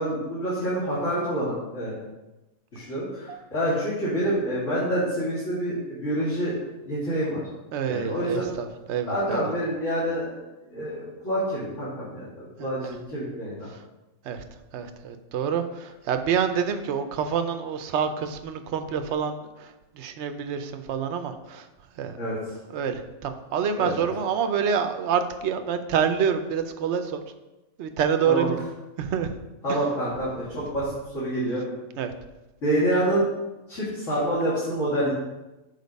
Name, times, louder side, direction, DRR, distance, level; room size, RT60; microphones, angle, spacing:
voice 1, 0.0-2.0 2.7-6.6 6.8-7.4 7.9-8.4 9.1-10.4 10.7-13.7 22.2-22.4 23.8-24.1 28.2-28.5 29.6-31.6 32.6-33.2 33.7-35.1, right 1 dB, 60° left, -10 dB, 2.7 m, -27 dB
voice 2, 7.7-9.5 12.6-12.9 14.2-14.4 14.7-21.7 22.0-22.2 22.7-27.2 27.8-28.7 29.0-29.3 29.7-29.8 32.0-32.1, right 7 dB, 65° right, 8 dB, 0.8 m, -27 dB
6.7 x 4.5 x 5.2 m, 1.0 s
omnidirectional pair, 1.4 m